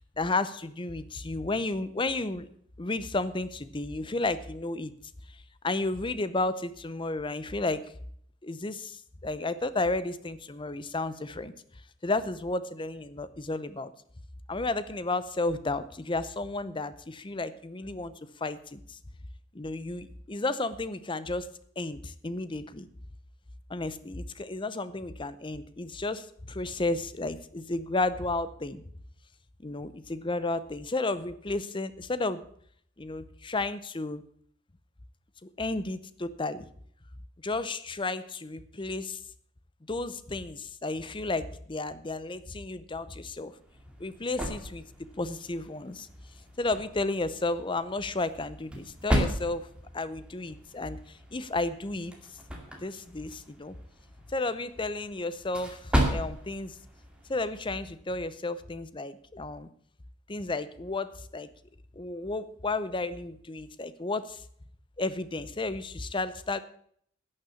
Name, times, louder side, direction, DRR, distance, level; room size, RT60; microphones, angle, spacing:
voice 1, 0.2-2.5 2.8-4.9 5.6-7.8 8.4-11.5 12.0-13.9 14.5-18.1 18.4-19.0 19.5-22.9 23.7-28.8 29.6-32.4 33.0-34.2 35.4-36.7 37.4-39.2 39.9-43.6 44.0-44.8 45.2-46.1 46.6-49.7 49.9-52.1 52.8-53.8 54.3-56.8 57.3-59.7 60.3-61.5 62.0-64.4 65.0-66.6, left 2 dB, 25° left, 14 dB, 0.7 m, -32 dB
sound 1, 43.5-58.0, equal, 5° right, 2.1 m, -35 dB
11.5 x 6.6 x 8.3 m, 0.63 s
head